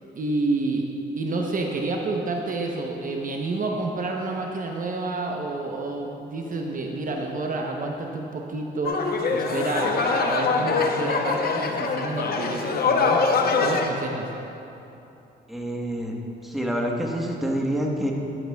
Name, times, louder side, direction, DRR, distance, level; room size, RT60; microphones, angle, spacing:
voice 1, 0.2-0.9 1.2-14.3, right 2 dB, 45° right, 1 dB, 0.8 m, -29 dB
sound 1, 8.8-13.9, left 4 dB, 50° left, 0.8 m, -23 dB
voice 2, 15.5-16.1 16.4-18.1, equal, ahead, -1 dB, 1.2 m, -27 dB
11.5 x 10.5 x 2.3 m, 2.9 s
cardioid pair, 90°, 20 cm